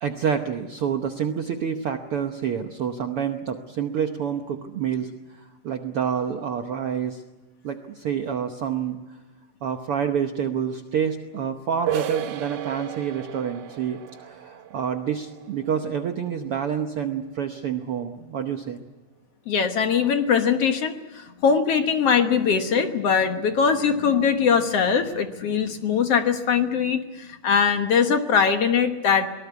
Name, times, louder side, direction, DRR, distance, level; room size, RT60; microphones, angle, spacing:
voice 1, 0.0-7.2 7.6-9.0 9.6-18.8, right 8 dB, 60° right, 6 dB, 1.5 m, -28 dB
sound 1, 11.9-17.3, right 11 dB, 85° right, 2.6 m, -35 dB
voice 2, 19.5-29.3, left 6 dB, 60° left, 7 dB, 2.0 m, -21 dB
23.5 x 19.0 x 8.2 m, 1.2 s
omnidirectional pair, 3.6 m